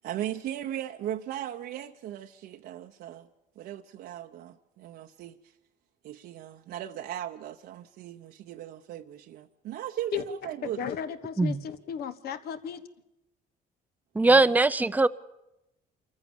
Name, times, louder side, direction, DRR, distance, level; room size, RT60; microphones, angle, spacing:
voice 1, 0.0-3.3 3.6-5.4 6.0-10.8 14.2-14.5, right 11 dB, 70° right, 0.8 m, -37 dB
voice 2, 10.6-12.8, left 8 dB, 70° left, 1.4 m, -34 dB
voice 3, 14.1-15.1, right 2 dB, 10° right, 0.6 m, -21 dB
26.5 x 14.5 x 7.1 m
cardioid pair, 110°, 17 cm